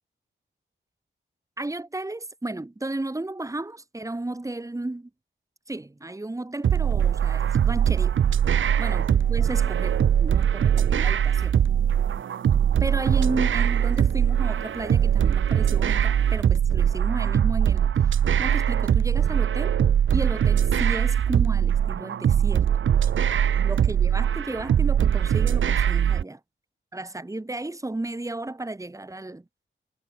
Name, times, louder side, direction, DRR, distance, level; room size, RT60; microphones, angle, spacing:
voice 1, 1.6-5.1 5.7-8.2 8.8-11.5 12.8-19.7 20.1-22.7 23.1-23.2 23.5-26.4 26.9-29.4, right 2 dB, 15° right, 3.9 m, -33 dB
sound 1, 6.6-26.2, right 9 dB, 75° right, 0.8 m, -21 dB
wide cardioid pair, 140°, 20 cm